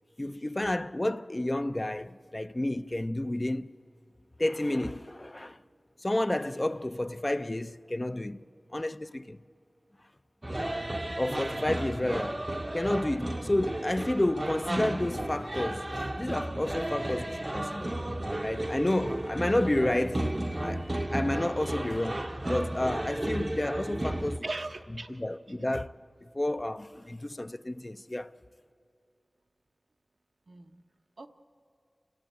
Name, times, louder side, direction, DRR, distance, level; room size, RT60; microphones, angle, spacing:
voice 1, 0.2-3.7 4.4-5.6 6.0-8.4 8.7-9.4 11.2-12.4 12.7-17.9 18.4-20.3 20.6-20.8 21.1-24.4 25.1-26.0 26.3-28.3, left 1 dB, 25° left, 0.5 m, -30 dB
sound 1, 10.4-24.4, right 1 dB, 30° right, 0.7 m, -33 dB
voice 2, 24.4-25.2 25.7-25.8 30.5-30.8 31.2-31.3, right 2 dB, 70° right, 0.9 m, -39 dB
28.0 x 16.5 x 8.6 m
wide cardioid pair, 55°, 0 cm